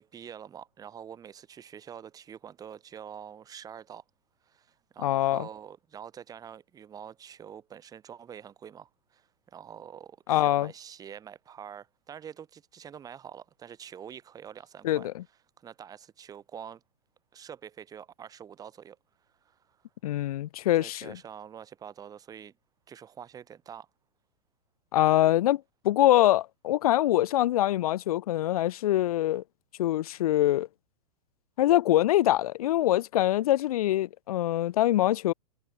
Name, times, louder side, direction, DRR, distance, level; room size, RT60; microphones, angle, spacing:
voice 1, 0.0-4.0 4.4-15.1 15.6-16.8 17.3-19.0 19.4-19.8 20.8-22.5 22.9-23.9, right 8 dB, 20° right, 2.8 m, -46 dB
voice 2, 5.0-5.5 10.3-10.7 14.8-15.1 20.0-21.2 24.9-29.4 29.8-30.7 31.6-35.3, left 14 dB, 65° left, 0.6 m, -24 dB
hypercardioid pair, 135°, 20 cm